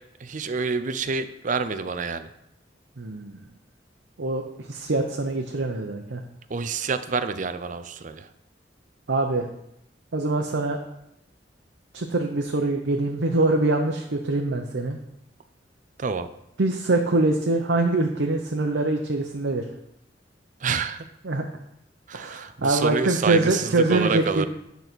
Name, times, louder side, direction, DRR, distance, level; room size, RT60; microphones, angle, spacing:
voice 1, 0.2-2.3 6.5-8.3 16.0-16.3 20.6-21.0 22.1-24.5, right 5 dB, 45° right, 11 dB, 0.5 m, -28 dB
voice 2, 3.0-3.4 4.2-6.2 9.1-9.5 10.1-10.8 11.9-15.0 16.6-19.6 21.2-21.4 22.1-24.5, right 2 dB, 90° right, 2 dB, 0.7 m, -24 dB
9.3 x 4.0 x 6.1 m, 0.81 s
head